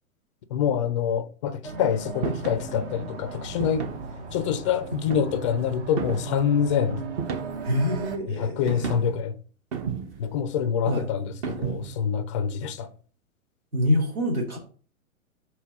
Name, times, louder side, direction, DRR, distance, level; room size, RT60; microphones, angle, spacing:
voice 1, 0.5-3.9 4.3-7.0 8.3-9.3 10.2-12.9, left 8 dB, 25° left, 0.3 m, -26 dB
sound 1, 1.6-8.2, right 4 dB, 50° right, 1.2 m, -37 dB
sound 2, 2.2-2.7 3.6-4.1 4.9-5.5 6.0-6.4 7.2-7.7 8.7-9.2 9.7-10.3 11.4-12.0, right 6 dB, 25° right, 0.5 m, -32 dB
voice 2, 7.6-8.9 10.8-11.1 13.7-14.6, left 1 dB, 85° right, 2.5 m, -25 dB
4.5 x 4.2 x 5.7 m
hypercardioid pair, 115°, 42 cm